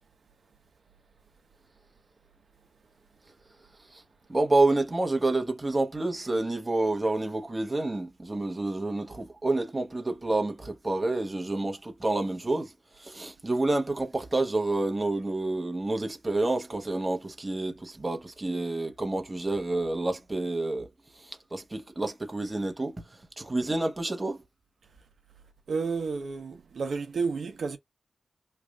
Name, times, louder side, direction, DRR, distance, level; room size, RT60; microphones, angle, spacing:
voice 1, 4.3-20.9 21.2-24.4, right 2 dB, 25° right, 1.0 m, -29 dB
voice 2, 25.7-27.8, right 4 dB, 75° right, 0.9 m, -31 dB
3.3 x 2.5 x 3.5 m
wide cardioid pair, 90°, 0 cm